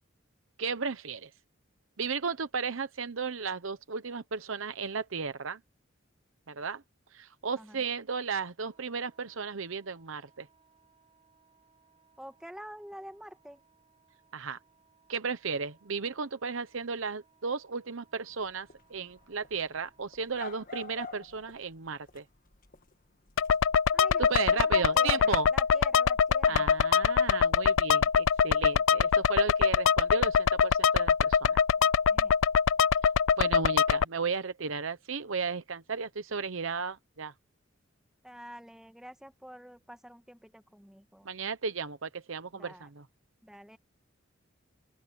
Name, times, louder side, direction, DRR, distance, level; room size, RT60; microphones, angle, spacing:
voice 1, 0.6-1.3 2.0-5.6 6.5-6.8 7.1-10.5 14.3-14.6 15.1-22.2 24.2-25.5 26.4-31.6 33.4-37.3 41.2-43.1, right 5 dB, 70° right, 0.9 m, -34 dB
Wind instrument woodwind instrument, 8.6-20.4, right 5 dB, 25° right, 6.9 m, -67 dB
voice 2, 12.2-13.6 23.9-26.7 32.1-32.3 38.2-41.3 42.5-42.9 43.4-43.8, equal, 5° right, 1.4 m, -47 dB
sound 1, 18.3-23.6, left 4 dB, 45° left, 1.5 m, -47 dB
sound 2, 23.4-34.0, left 7 dB, 70° left, 0.4 m, -24 dB
open air
head